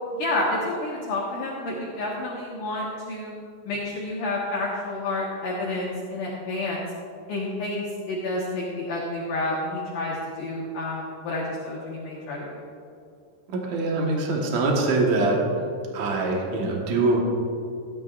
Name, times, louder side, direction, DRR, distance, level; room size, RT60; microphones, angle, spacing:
voice 1, 0.1-3.3 3.7-6.8 7.3-12.6, left 2 dB, 65° left, -4 dB, 2.3 m, -29 dB
voice 2, 13.5-15.4 15.9-17.2, right 3 dB, 65° right, -1 dB, 1.9 m, -23 dB
16.0 x 12.0 x 2.5 m, 2.5 s
omnidirectional pair, 5.3 m